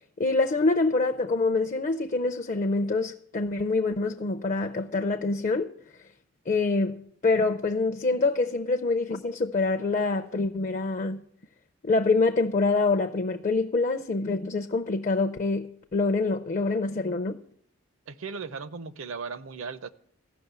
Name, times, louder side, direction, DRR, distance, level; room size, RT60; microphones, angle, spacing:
voice 1, 0.2-5.7 6.5-11.2 11.8-17.4, left 3 dB, 35° left, 0.5 m, -26 dB
voice 2, 18.1-19.9, right 5 dB, 65° right, 0.7 m, -37 dB
14.5 x 6.0 x 8.1 m
head